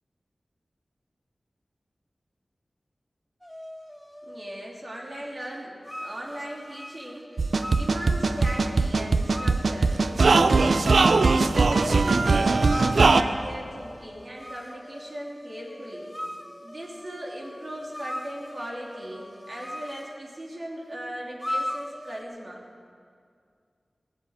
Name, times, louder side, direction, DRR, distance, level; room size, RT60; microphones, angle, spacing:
sound 1, 3.4-4.7 5.8-20.3 21.4-22.2, left 1 dB, 10° left, 0.8 m, -40 dB
voice 1, 4.2-7.3 7.7-11.1 11.8-16.1 16.6-22.6, right 1 dB, 50° right, -3 dB, 3.2 m, -38 dB
sound 2, 7.4-13.2, right 3 dB, 80° right, 0.6 m, -20 dB
17.0 x 8.1 x 8.9 m, 2.2 s
wide cardioid pair, 55°, 0 cm